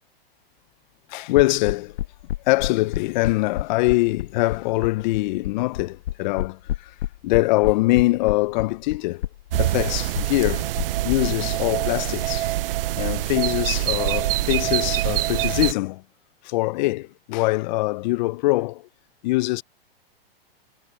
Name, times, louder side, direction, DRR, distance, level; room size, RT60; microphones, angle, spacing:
voice 1, 1.1-2.0 2.5-6.9 7.2-9.2 9.6-10.7 11.0-12.5 13.0-16.0 16.4-18.9 19.2-19.6, left 20 dB, 50° left, 0.8 m, -23 dB
sound 1, 1.4-11.2, left 13 dB, 70° left, 1.7 m, -28 dB
sound 2, 9.5-15.7, right 15 dB, 65° right, 0.6 m, -25 dB
hypercardioid pair, 135°, 30 cm